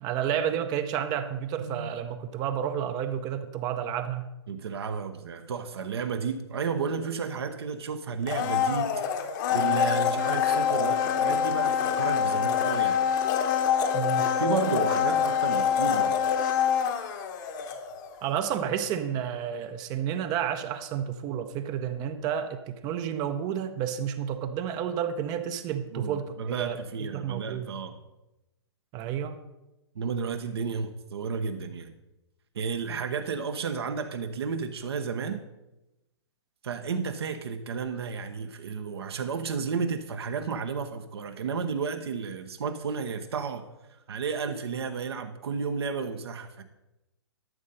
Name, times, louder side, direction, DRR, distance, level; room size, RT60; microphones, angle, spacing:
voice 1, 0.0-4.3 13.9-14.3 18.2-27.7 28.9-29.4, right 9 dB, 25° right, 9 dB, 0.7 m, -31 dB
voice 2, 1.6-1.9 4.5-9.0 9.5-13.0 14.4-16.2 25.9-28.0 29.9-31.9 32.5-35.4 36.6-43.6 44.1-46.6, right 5 dB, 65° right, 7 dB, 1.0 m, -32 dB
Domestic sounds home sounds, 8.2-18.2 18.5-18.6, left 8 dB, 40° left, 1.2 m, -25 dB
12.5 x 6.4 x 5.5 m, 0.96 s
figure-of-eight pair, 125°, 15 cm